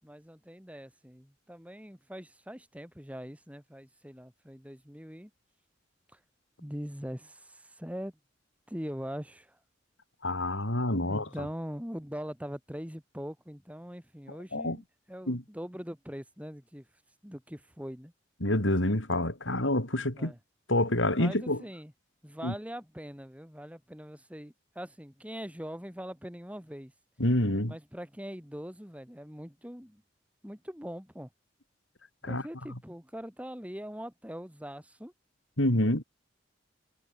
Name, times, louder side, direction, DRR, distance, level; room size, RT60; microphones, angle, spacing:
voice 1, 0.0-5.3 6.1-6.2 6.6-8.1 8.7-9.6 11.0-16.9 17.2-18.1 20.1-20.4 21.2-21.9 22.2-26.9 27.7-30.0 30.4-31.3 32.2-35.1, equal, 5° right, 6.6 m, -42 dB
voice 2, 10.2-11.3 14.5-14.8 15.3-15.4 18.4-20.3 20.7-21.6 22.4-22.5 27.2-27.7 32.2-32.4 35.6-36.0, left 1 dB, 85° left, 5.3 m, -27 dB
head